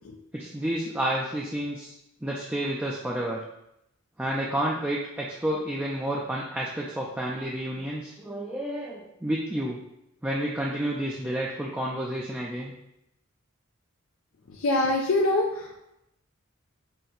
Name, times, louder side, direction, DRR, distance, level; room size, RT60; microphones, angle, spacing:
voice 1, 0.3-1.9 2.2-3.4 4.2-9.8 10.2-12.7, right 1 dB, 5° right, -4 dB, 0.4 m, -30 dB
voice 2, 14.6-15.8, left 2 dB, 70° left, 0 dB, 0.5 m, -24 dB
5.9 x 2.2 x 3.8 m, 0.83 s
head